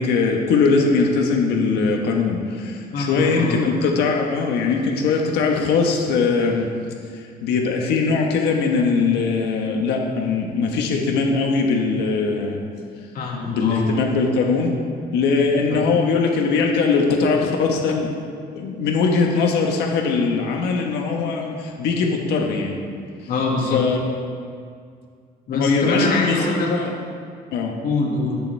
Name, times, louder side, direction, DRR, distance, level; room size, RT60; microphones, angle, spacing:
voice 1, 0.0-6.7 7.1-12.6 13.5-14.8 15.1-18.1 18.5-22.7 23.7-24.0 25.5-26.9 27.5-27.7, left 4 dB, 80° left, 1 dB, 1.4 m, -21 dB
voice 2, 2.9-3.7 13.1-13.9 15.7-15.8 23.3-23.8 25.5-26.7 27.8-28.4, left 3 dB, 60° left, -2 dB, 2.4 m, -24 dB
21.0 x 7.0 x 3.5 m, 2.2 s
cardioid pair, 110°, 17 cm